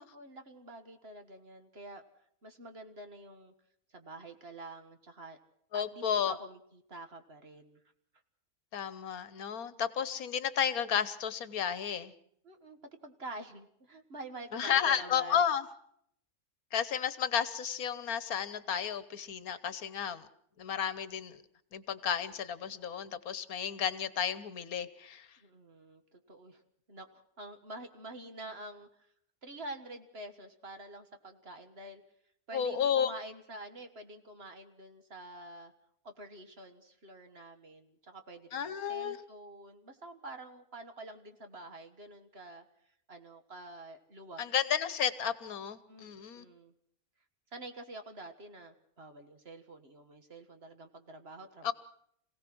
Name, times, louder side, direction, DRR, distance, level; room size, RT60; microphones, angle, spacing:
voice 1, 0.0-2.0 2.4-3.5 3.9-5.4 5.7-7.8 12.4-15.4 25.4-26.6 26.9-29.1 29.4-32.0 32.5-35.7 36.0-42.6 43.1-44.4 45.9-46.7 47.5-51.7, right 2 dB, 45° right, 7 dB, 1.8 m, -47 dB
voice 2, 5.7-6.3 8.7-12.1 14.5-15.6 16.7-20.3 20.6-21.4 21.7-25.3 32.5-33.1 38.5-39.2 44.4-46.4 51.6-51.7, left 8 dB, 75° left, 14 dB, 1.4 m, -32 dB
26.5 x 17.0 x 6.2 m, 0.69 s
omnidirectional pair, 1.6 m